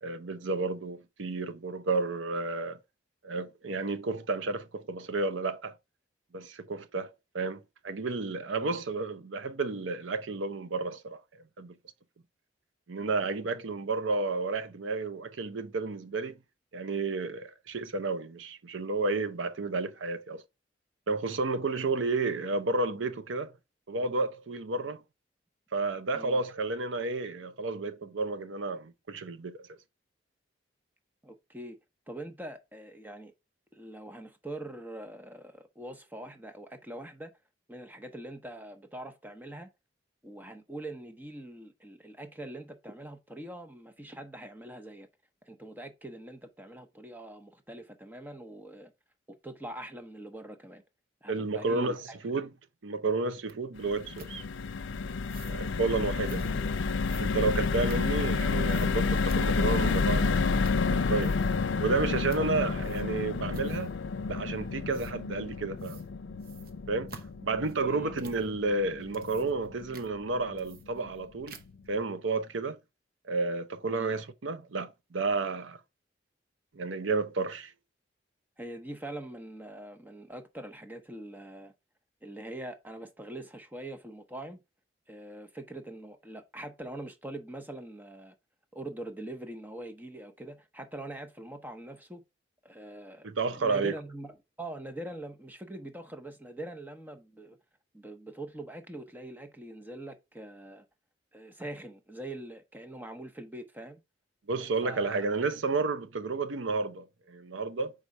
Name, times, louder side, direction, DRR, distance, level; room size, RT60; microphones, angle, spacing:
voice 1, 0.0-2.8 3.2-5.7 6.3-11.2 11.6-11.7 12.9-16.4 16.7-20.4 21.1-23.5 23.9-25.0 25.7-29.8 51.3-52.0 52.2-52.5 52.8-54.4 55.5-56.6 57.2-60.6 60.9-61.4 61.8-63.9 64.3-66.0 66.9-67.1 67.4-71.5 71.9-72.8 73.2-75.8 76.7-77.7 93.2-93.9 104.5-107.9, right 3 dB, 85° right, 0.7 m, -31 dB
voice 2, 31.2-31.8 32.1-33.3 33.7-37.3 37.7-39.7 40.2-45.1 45.4-48.9 49.3-50.8 51.2-52.2 56.5-56.8 62.4-62.7 67.9-68.1 73.9-74.2 78.6-81.7 82.2-84.6 85.1-88.3 88.7-92.2 92.6-97.6 97.9-100.8 101.3-104.0 104.6-105.4, right 1 dB, 10° right, 0.8 m, -43 dB
sound 1, 53.5-53.6 54.2-54.4 55.2-55.6 56.2-56.5 57.0-58.4 58.7-58.9 59.3-59.4 59.8-60.3 60.6-60.9 61.1-61.6 62.3-62.5 62.8-63.2 63.5-64.0 64.9-65.1 65.8-66.1 66.4-68.5 69.0-69.7 69.9-70.1 70.6-71.2 71.5-71.9, right 4 dB, 50° right, 0.8 m, -50 dB
sound 2, 53.8-70.1 70.5-70.6 70.9-71.1, left 4 dB, 80° left, 0.5 m, -30 dB
4.8 x 3.7 x 5.3 m
head